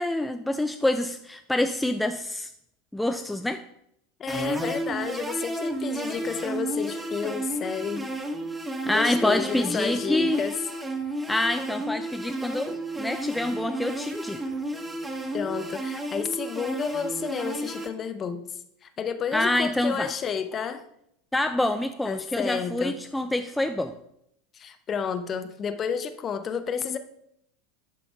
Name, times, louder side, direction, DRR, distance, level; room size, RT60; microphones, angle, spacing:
voice 1, 0.0-2.5 2.9-3.6 8.9-10.4 11.3-14.4 19.3-20.1 21.3-23.9, left 1 dB, 5° left, 7 dB, 0.4 m, -26 dB
voice 2, 4.2-8.1 8.9-10.5 15.3-18.4 18.8-20.8 22.0-23.0 24.5-27.0, left 6 dB, 30° left, 10 dB, 0.8 m, -31 dB
sound 1, 4.3-17.9, right 1 dB, 10° right, 0.9 m, -32 dB
10.5 x 4.1 x 4.5 m, 0.75 s
hypercardioid pair, 85°, 0 cm